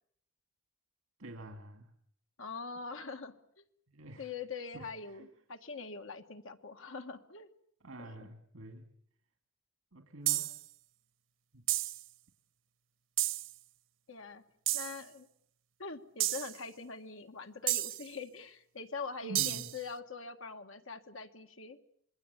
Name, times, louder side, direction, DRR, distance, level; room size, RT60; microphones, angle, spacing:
voice 1, 1.2-1.9 3.9-4.3 4.7-5.3 7.8-8.8 9.9-10.5 11.5-11.7 19.2-19.7, right 1 dB, 85° right, 5 dB, 2.3 m, -47 dB
voice 2, 2.4-3.6 4.2-7.5 8.0-8.3 14.1-14.4 14.7-15.3 15.8-21.8, left 4 dB, 75° left, 6 dB, 1.8 m, -43 dB
sound 1, 10.3-10.6 11.7-12.0 13.2-13.5 14.7-15.0 16.2-16.6 17.7-18.1 19.3-19.8, right 15 dB, 65° right, 1.2 m, -32 dB
26.0 x 21.5 x 8.3 m, 0.66 s
head